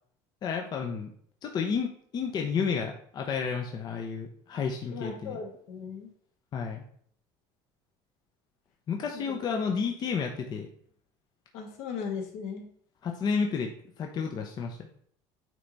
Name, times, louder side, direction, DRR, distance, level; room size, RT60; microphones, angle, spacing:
voice 1, 0.4-1.1 1.4-5.4 6.5-6.8 8.9-10.7 13.0-13.7 14.0-14.9, left 6 dB, 35° left, 3 dB, 0.7 m, -31 dB
voice 2, 4.9-6.1 9.1-9.4 11.5-12.7, left 6 dB, 70° left, 2 dB, 1.6 m, -37 dB
9.1 x 3.3 x 4.0 m, 0.62 s
cardioid pair, 130°, 12 cm